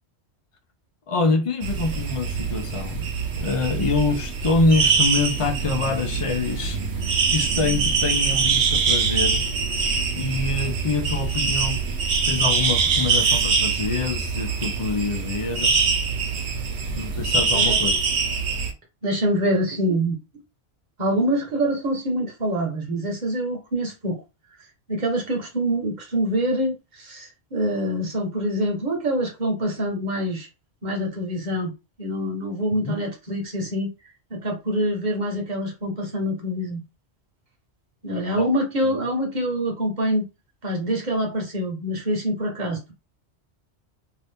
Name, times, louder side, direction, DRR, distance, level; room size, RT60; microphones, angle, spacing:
voice 1, 1.1-3.1 3.3-9.4 10.1-11.8 12.1-15.7 16.9-18.0 32.7-33.0 38.3-38.5, left 3 dB, 40° left, 0.5 m, -25 dB
sound 1, 1.6-18.7, right 5 dB, 75° right, 1.0 m, -23 dB
voice 2, 19.0-20.1 21.0-24.2 24.9-30.5 30.8-31.7 32.0-33.9 34.3-36.8 38.0-40.3 40.6-42.9, equal, 40° right, 1.2 m, -25 dB
2.7 x 2.7 x 3.4 m
omnidirectional pair, 1.2 m